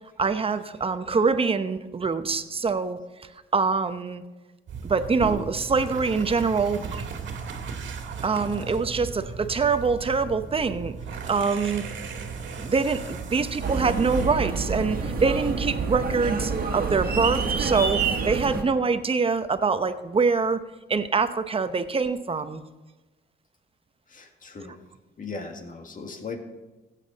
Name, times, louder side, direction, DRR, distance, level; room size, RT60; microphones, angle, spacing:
voice 1, 0.2-3.0 3.5-4.2 4.8-7.0 8.2-11.0 11.3-11.8 12.6-18.0 18.2-20.6 20.9-22.6, right 4 dB, 30° right, 10 dB, 0.9 m, -24 dB
sound 1, 4.7-16.0, right 5 dB, 70° right, 1.8 m, -36 dB
sound 2, 13.6-18.6, right 5 dB, 50° right, 1.7 m, -27 dB
voice 2, 24.1-24.7 25.2-26.4, left 4 dB, 40° left, 4 dB, 1.9 m, -37 dB
15.0 x 8.4 x 4.1 m, 1.1 s
cardioid pair, 90°, 20 cm